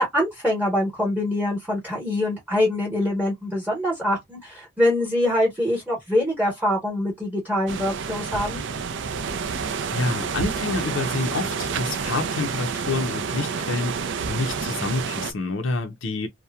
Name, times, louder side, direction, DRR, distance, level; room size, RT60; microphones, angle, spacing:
voice 1, 0.0-8.6, left 1 dB, 10° right, 1.0 m, -24 dB
sound 1, 7.7-15.3, right 5 dB, 60° right, 0.4 m, -29 dB
voice 2, 9.9-16.3, left 3 dB, 70° left, 0.5 m, -28 dB
2.8 x 2.1 x 2.2 m
head